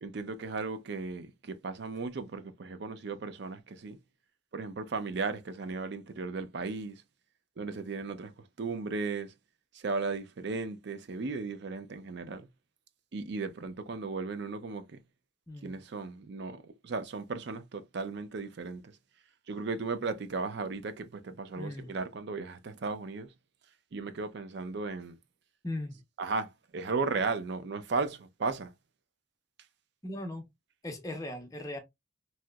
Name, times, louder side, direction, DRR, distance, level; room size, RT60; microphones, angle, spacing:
voice 1, 0.0-4.0 4.5-7.0 7.6-8.3 8.6-9.3 9.7-12.5 13.1-14.9 15.6-18.9 19.5-23.3 23.9-25.2 26.2-28.7, right 4 dB, 55° right, 0.4 m, -35 dB
voice 2, 21.6-21.9 25.6-26.0 30.0-30.5 30.8-31.8, left 1 dB, 15° left, 0.7 m, -38 dB
2.9 x 2.8 x 2.2 m
head